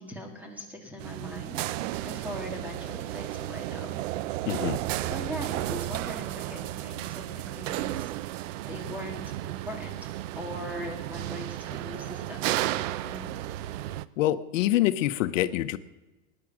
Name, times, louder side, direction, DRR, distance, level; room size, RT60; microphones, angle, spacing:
voice 1, 0.0-1.6 2.0-4.0 5.0-8.1 8.7-10.1 10.4-13.4, left 1 dB, 5° right, 2 dB, 2.4 m, -40 dB
sound 1, 1.0-14.1, right 15 dB, 80° right, 0.6 m, -33 dB
voice 2, 4.5-4.8 14.2-15.8, left 14 dB, 85° left, 12 dB, 0.8 m, -25 dB
19.0 x 9.9 x 6.1 m, 1.1 s
supercardioid pair, 155°, 37 cm